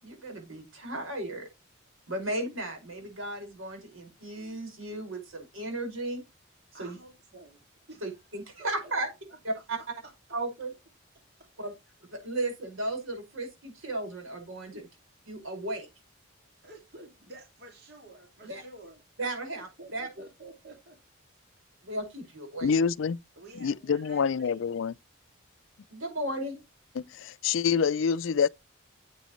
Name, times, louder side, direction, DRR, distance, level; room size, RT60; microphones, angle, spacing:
voice 1, 0.0-1.5 2.1-6.2 6.7-7.0 8.0-9.1 9.4-9.8 10.3-10.7 11.6-11.7 12.1-14.8 15.3-15.9 18.4-18.6 19.2-20.1 21.8-22.7 25.9-26.6, right 2 dB, 85° right, 5.4 m, -35 dB
voice 2, 6.7-7.6 7.9-8.1 8.6-8.7 9.0-9.1 9.5-9.6 11.4-11.5 14.7-14.9 16.6-19.0 19.6-21.0 23.3-24.9, right 2 dB, 50° right, 2.3 m, -50 dB
voice 3, 22.6-23.2 23.6-24.9 27.0-28.5, left 6 dB, 70° left, 0.4 m, -26 dB
9.1 x 8.4 x 3.1 m
head